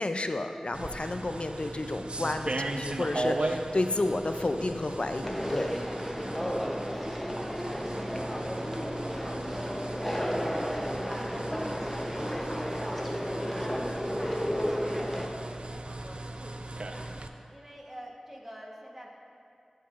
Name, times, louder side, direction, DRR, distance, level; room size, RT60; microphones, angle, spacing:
voice 1, 0.0-5.7, left 2 dB, 55° left, 7 dB, 0.3 m, -31 dB
sound 1, 0.7-17.3, right 2 dB, 55° right, 0.4 m, -38 dB
voice 2, 2.0-2.4 5.5-6.4 6.9-11.5 12.1-13.3 13.8-17.1 17.5-19.1, equal, 15° right, -2 dB, 1.1 m, -47 dB
Conversation, 5.2-15.2, equal, 5° left, 0.7 m, -33 dB
11.0 x 5.8 x 2.4 m, 2.4 s
wide cardioid pair, 55°, 2 cm